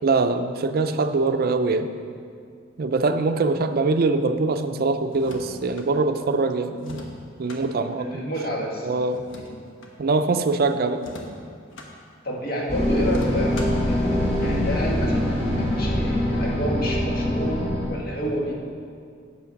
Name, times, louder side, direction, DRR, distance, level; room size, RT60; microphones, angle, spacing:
voice 1, 0.0-1.9 2.8-7.0 7.4-8.2 8.8-9.2 10.0-11.0, right 3 dB, 50° right, 9 dB, 0.4 m, -23 dB
sound 1, 5.1-5.9 6.8-7.6 9.1-10.0 11.0-11.9 13.1-13.9, left 1 dB, 80° left, 1.1 m, -41 dB
voice 2, 8.0-8.9 9.4-9.6 12.2-17.6 17.9-18.5, equal, 50° left, -3 dB, 1.6 m, -30 dB
sound 2, 12.7-17.9, left 1 dB, 30° left, 1.9 m, -23 dB
8.3 x 7.0 x 5.2 m, 2.2 s
head